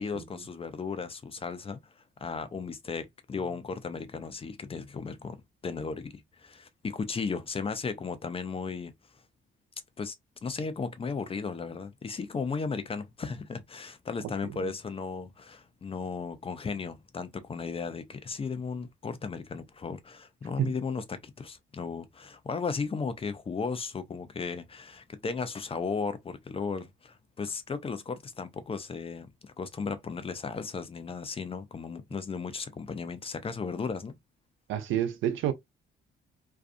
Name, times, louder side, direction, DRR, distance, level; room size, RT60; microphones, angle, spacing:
voice 1, 0.0-1.8 2.2-8.9 10.0-10.2 10.4-34.1, left 5 dB, 30° left, 0.5 m, -35 dB
voice 2, 34.7-35.5, right 11 dB, 85° right, 0.6 m, -29 dB
2.5 x 2.3 x 2.4 m
cardioid pair, 90°, 20 cm